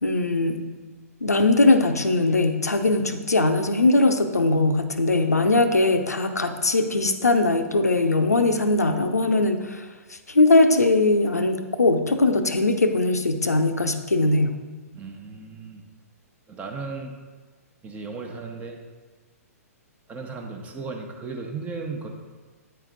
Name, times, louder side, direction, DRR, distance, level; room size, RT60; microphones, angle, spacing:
voice 1, 0.0-0.7 1.2-14.5, left 2 dB, 85° left, 7 dB, 0.6 m, -20 dB
voice 2, 14.9-15.8 16.5-17.1 17.8-18.8 20.1-22.1, right 4 dB, 15° right, 3 dB, 0.9 m, -35 dB
8.9 x 4.6 x 3.9 m, 1.4 s
figure-of-eight pair, 120°, 8 cm